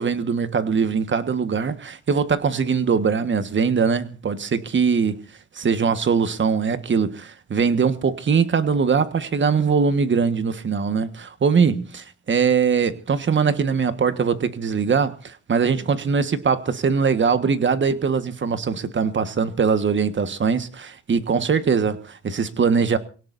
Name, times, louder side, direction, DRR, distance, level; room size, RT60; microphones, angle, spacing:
voice 1, 0.0-5.2 5.5-23.0, right 6 dB, 40° right, 1.5 m, -21 dB
26.0 x 17.5 x 2.7 m
cardioid pair, 90°, 30 cm